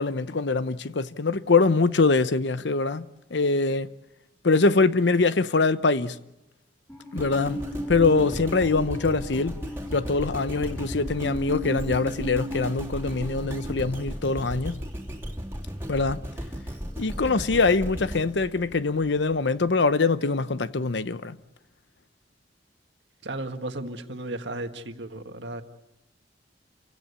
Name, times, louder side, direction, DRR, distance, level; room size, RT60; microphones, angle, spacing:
voice 1, 0.0-3.9 4.4-6.2 7.1-7.6 7.9-9.6 9.9-14.8 15.9-16.2 17.0-21.4, left 3 dB, 85° left, 0.8 m, -23 dB
Musical instrument, 6.9-13.7, equal, 15° left, 4.5 m, -36 dB
sound 1, 7.2-19.4 19.9-20.0, equal, 15° right, 2.9 m, -36 dB
voice 2, 23.2-25.6, right 2 dB, 80° right, 1.7 m, -34 dB
28.5 x 16.5 x 8.4 m
head